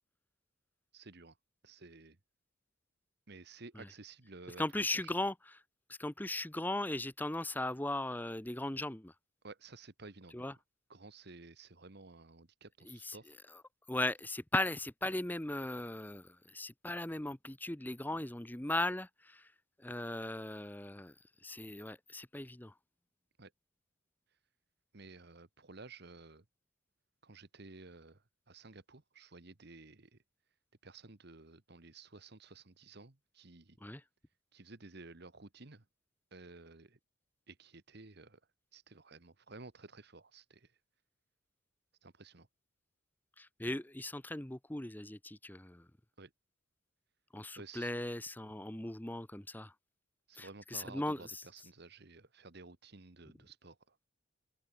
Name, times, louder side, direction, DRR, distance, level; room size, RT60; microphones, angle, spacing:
voice 1, 0.9-1.3 1.6-2.2 3.3-4.9 9.4-10.4 10.9-13.3 23.4-23.5 24.9-26.4 27.2-28.2 28.5-30.1 30.8-33.8 34.5-35.8 36.3-37.0 37.5-38.4 38.7-40.6 42.0-42.5 46.2-46.3 47.6-47.9 50.3-53.8, right 3 dB, 55° right, 1.5 m, -53 dB
voice 2, 4.6-5.6 6.0-9.1 10.3-10.6 12.8-13.6 13.9-19.5 19.8-21.1 21.4-22.7 33.8-34.0 43.4-45.9 47.3-49.7 50.4-51.4, left 1 dB, 10° left, 0.8 m, -38 dB
open air
head